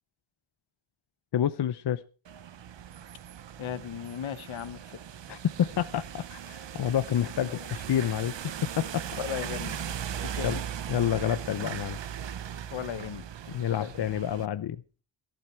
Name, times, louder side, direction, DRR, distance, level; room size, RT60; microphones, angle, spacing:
voice 1, 1.3-2.0 5.3-8.4 8.6-9.0 10.4-10.6 10.9-12.0 13.5-14.8, left 10 dB, 60° left, 12 dB, 0.7 m, -28 dB
sound 1, 2.2-14.5, right 9 dB, 65° right, 0.9 m, -39 dB
voice 2, 3.6-4.8 7.2-7.7 9.2-9.8 10.2-10.5 12.7-13.3 13.7-13.9, left 9 dB, 80° left, 12 dB, 1.3 m, -36 dB
17.0 x 12.0 x 4.5 m, 0.36 s
wide cardioid pair, 110°, 46 cm